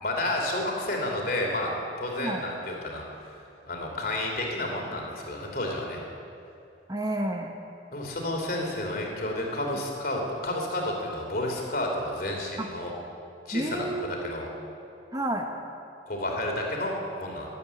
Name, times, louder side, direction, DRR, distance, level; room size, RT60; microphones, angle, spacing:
voice 1, 0.0-3.0 3.7-6.0 7.9-12.9 13.5-13.9 14.2-14.5 16.1-17.5, left 1 dB, 50° left, 1 dB, 3.0 m, -31 dB
voice 2, 6.9-7.5 12.6-12.7 13.5-14.5 15.1-15.5, right 1 dB, 20° right, 3 dB, 1.0 m, -30 dB
13.5 x 12.5 x 8.4 m, 2.6 s
head